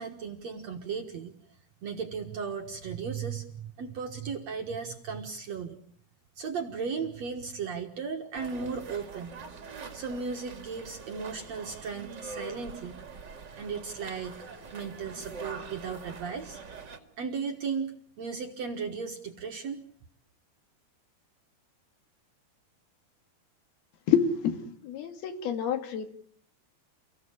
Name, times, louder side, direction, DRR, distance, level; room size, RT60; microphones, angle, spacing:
voice 1, 0.0-1.3 1.8-5.8 6.4-9.4 9.9-13.0 13.6-14.4 14.7-16.6 17.2-19.8, right 5 dB, 55° right, 4 dB, 2.1 m, -36 dB
sound 1, 8.3-17.0, right 4 dB, 35° right, 2.2 m, -44 dB
voice 2, 24.1-26.1, left 8 dB, 70° left, 7 dB, 3.8 m, -28 dB
30.0 x 16.0 x 8.7 m, 0.62 s
omnidirectional pair, 4.6 m